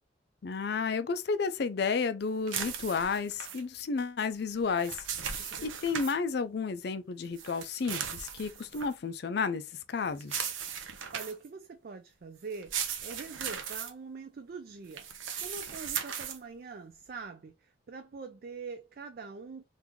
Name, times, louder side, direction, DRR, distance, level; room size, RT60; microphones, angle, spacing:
voice 1, 0.4-10.5, left 5 dB, 55° left, 0.4 m, -32 dB
sound 1, 2.5-3.6 4.6-6.2 7.4-8.9 10.2-11.5 12.5-13.9 14.9-16.4, right 8 dB, 85° right, 0.7 m, -37 dB
voice 2, 11.1-15.1 15.4-19.6, right 4 dB, 50° right, 0.3 m, -44 dB
2.9 x 2.6 x 3.6 m
head